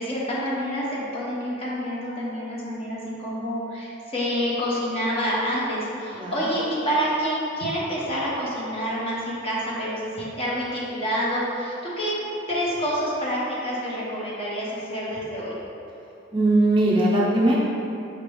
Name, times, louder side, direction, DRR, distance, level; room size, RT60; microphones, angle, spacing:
voice 1, 0.0-12.2 12.5-15.5, equal, 30° left, -6 dB, 0.8 m, -27 dB
voice 2, 16.3-17.5, right 1 dB, 25° right, -5 dB, 0.4 m, -20 dB
5.1 x 3.3 x 3.0 m, 2.8 s
head